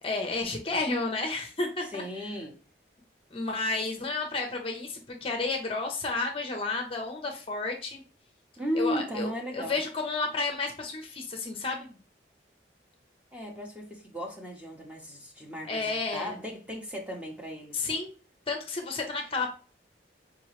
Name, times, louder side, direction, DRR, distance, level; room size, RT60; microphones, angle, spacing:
voice 1, 0.0-2.0 3.3-8.0 8.7-11.9 15.7-16.4 17.7-18.1 18.5-19.5, left 3 dB, 30° left, 0.7 m, -31 dB
voice 2, 1.9-2.5 8.6-9.8 13.3-18.0, equal, 5° right, 0.9 m, -35 dB
4.8 x 3.0 x 3.0 m
head